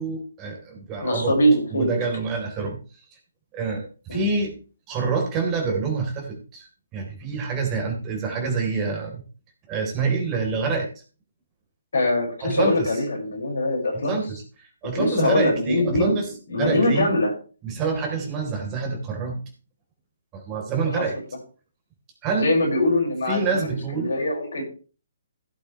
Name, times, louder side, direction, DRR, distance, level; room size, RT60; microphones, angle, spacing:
voice 1, 0.0-1.3 1.7-2.8 3.5-3.8 4.1-4.5 4.9-9.2 9.7-10.9 12.4-13.0 13.9-17.1 17.6-19.4 20.3-21.2 22.2-22.5 23.3-24.1, right 4 dB, 20° right, 2 dB, 3.8 m, -27 dB
voice 2, 1.0-1.9 4.1-4.2 11.9-14.2 14.9-16.1 16.5-17.3 21.0-21.1 22.3-24.6, left 1 dB, 65° left, 0 dB, 5.8 m, -22 dB
16.5 x 8.2 x 3.3 m, 0.36 s
figure-of-eight pair, 130°, 0 cm